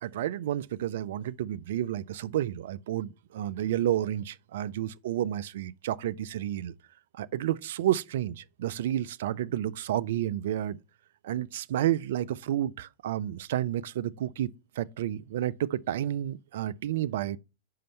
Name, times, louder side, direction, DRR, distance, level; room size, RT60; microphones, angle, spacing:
voice 1, 0.0-6.7 7.1-10.8 11.2-17.4, right 12 dB, 65° right, 0.3 m, -31 dB
5.7 x 5.1 x 5.4 m
hypercardioid pair, 100°, 0 cm